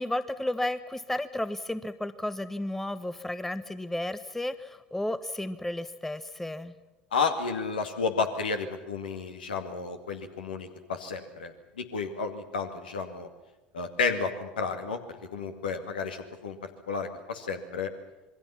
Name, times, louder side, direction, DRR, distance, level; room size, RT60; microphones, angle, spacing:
voice 1, 0.0-6.7, left 1 dB, 5° left, 14 dB, 0.9 m, -33 dB
voice 2, 7.1-13.3 13.7-17.9, left 5 dB, 70° left, 6 dB, 2.3 m, -32 dB
27.0 x 22.0 x 5.8 m, 1.1 s
figure-of-eight pair, 70°, 5 cm